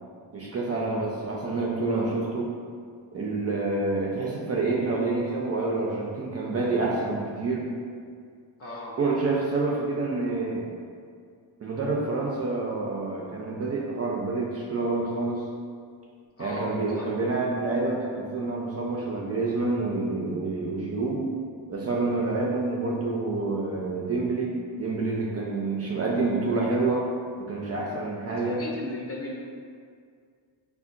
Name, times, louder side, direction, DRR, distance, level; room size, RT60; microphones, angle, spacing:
voice 1, 0.3-2.5 3.1-7.7 9.0-10.7 11.6-15.4 16.4-21.2 21.7-27.0 27.5-28.6, right 3 dB, 35° right, -3 dB, 0.4 m, -28 dB
voice 2, 8.6-8.9 16.4-16.7 16.9-17.1 28.5-29.5, left 2 dB, 30° left, -3 dB, 0.5 m, -36 dB
3.5 x 2.2 x 2.5 m, 2.1 s
cardioid pair, 75°, 46 cm